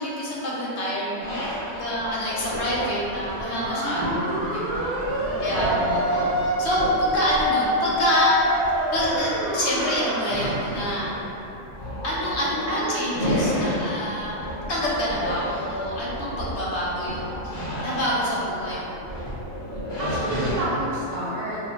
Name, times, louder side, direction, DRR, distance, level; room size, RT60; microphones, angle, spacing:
voice 1, 0.0-8.4 8.9-11.1 12.0-14.4 14.7-19.1, equal, 65° left, -6 dB, 0.9 m, -27 dB
sound 1, 1.2-20.9, equal, 30° left, 0.4 m, -32 dB
sound 2, 3.6-10.8, equal, 65° right, 0.9 m, -26 dB
voice 2, 5.2-6.1 12.7-13.1 20.0-21.6, right 1 dB, 90° right, -7 dB, 1.1 m, -30 dB
2.3 x 2.1 x 3.9 m, 2.9 s
omnidirectional pair, 1.3 m